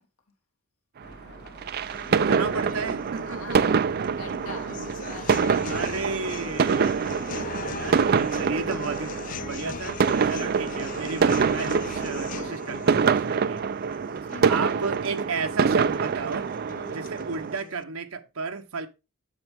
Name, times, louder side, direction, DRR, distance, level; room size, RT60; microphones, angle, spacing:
sound 1, 1.0-12.5, equal, 55° left, 3.3 m, -47 dB
sound 2, 1.5-17.6, right 6 dB, 45° right, 0.4 m, -25 dB
sound 3, 1.8-17.8, left 6 dB, 40° left, 0.3 m, -40 dB
voice 1, 2.1-3.8 5.7-7.0 7.5-10.0 10.3-13.6 14.5-16.5 16.9-18.9, right 4 dB, 75° right, 0.9 m, -33 dB
voice 2, 3.2-3.8 4.1-6.1 7.2-7.5 7.9-8.0 10.4-10.5 13.7-14.5 16.7-17.1, left 4 dB, 80° left, 2.3 m, -45 dB
7.8 x 7.2 x 3.5 m
head